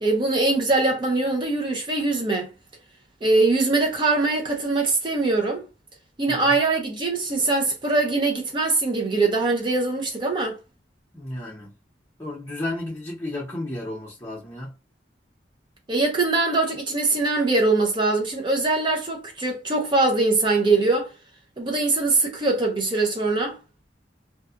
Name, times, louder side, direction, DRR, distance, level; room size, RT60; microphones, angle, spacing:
voice 1, 0.0-2.5 3.2-5.6 6.2-10.6 15.9-21.1 21.6-23.6, right 3 dB, 25° right, 0.5 m, -22 dB
voice 2, 11.1-11.7 12.2-14.7, left 1 dB, 15° left, 0.8 m, -33 dB
2.7 x 2.3 x 2.4 m
head